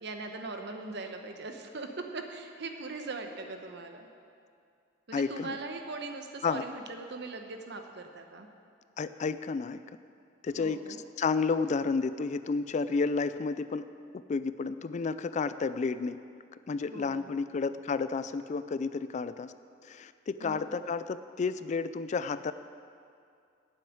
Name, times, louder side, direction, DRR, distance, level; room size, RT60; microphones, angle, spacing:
voice 1, 0.0-4.1 5.1-8.5 10.5-11.0 16.9-17.3 20.4-20.7, right 3 dB, 60° right, 5 dB, 1.0 m, -40 dB
voice 2, 5.1-5.6 6.4-6.6 9.0-9.8 10.4-10.8 11.2-13.9 14.3-16.2 16.7-19.5 19.8-22.5, left 4 dB, 40° left, 13 dB, 0.3 m, -31 dB
9.5 x 7.6 x 8.6 m, 2.3 s
head